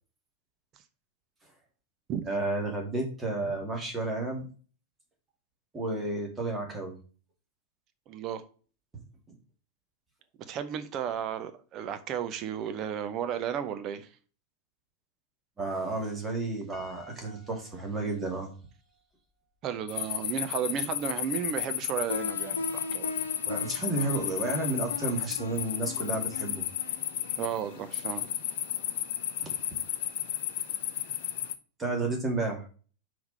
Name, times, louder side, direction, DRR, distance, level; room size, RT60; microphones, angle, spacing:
voice 1, 2.3-4.5 5.7-6.9 15.6-18.5 23.5-26.6 29.4-29.6 31.8-32.6, right 2 dB, 15° right, 2.5 m, -32 dB
voice 2, 8.1-8.4 10.5-14.1 19.6-23.1 27.4-28.3, right 9 dB, 35° right, 0.9 m, -33 dB
Piano, 16.7-19.0, right 1 dB, 5° left, 3.8 m, -54 dB
sound 1, 19.9-31.6, left 11 dB, 50° left, 0.6 m, -33 dB
sound 2, 22.1-28.9, left 3 dB, 75° left, 0.9 m, -40 dB
5.9 x 4.8 x 5.6 m
figure-of-eight pair, 90°, 0 cm